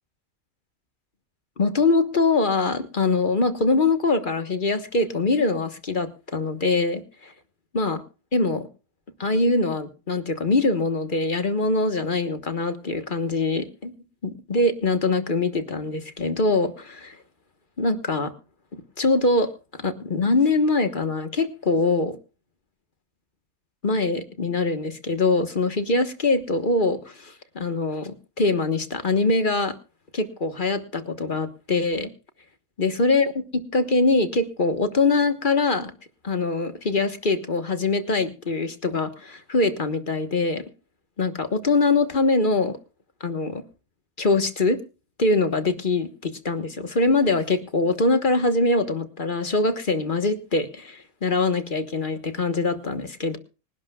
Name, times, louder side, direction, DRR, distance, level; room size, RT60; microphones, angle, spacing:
voice 1, 1.6-7.3 7.7-8.0 8.3-8.7 9.2-13.9 14.2-17.2 17.8-18.3 18.7-22.2 23.8-29.7 30.1-32.1 32.8-35.9 36.2-40.6 41.2-42.8 43.2-43.6 44.2-44.8 45.2-53.4, left 3 dB, 35° left, 9 dB, 1.4 m, -23 dB
25.5 x 11.5 x 2.3 m, 0.32 s
omnidirectional pair, 1.5 m